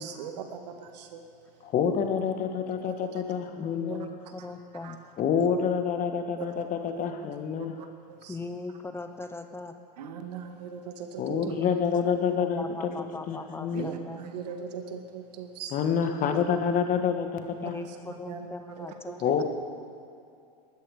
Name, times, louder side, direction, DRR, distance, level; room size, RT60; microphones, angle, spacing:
voice 1, 0.0-1.7 2.7-3.2 3.9-4.0 4.4-4.5 4.8-5.0 5.4-5.5 6.4-7.0 7.6-8.4 10.0-11.5 13.7-15.9 17.6-17.8 18.3-19.3, right 6 dB, 75° right, 6 dB, 1.7 m, -40 dB
voice 2, 1.6-4.1 5.2-7.8 11.2-12.6 13.3-13.9 15.7-17.8 19.2-19.4, left 7 dB, 40° left, 6 dB, 1.6 m, -27 dB
voice 3, 3.5-5.1 8.3-9.7 11.5-14.3 17.5-19.4, left 3 dB, 10° left, 8 dB, 0.9 m, -40 dB
19.0 x 13.0 x 5.0 m, 2.5 s
hypercardioid pair, 100°, 21 cm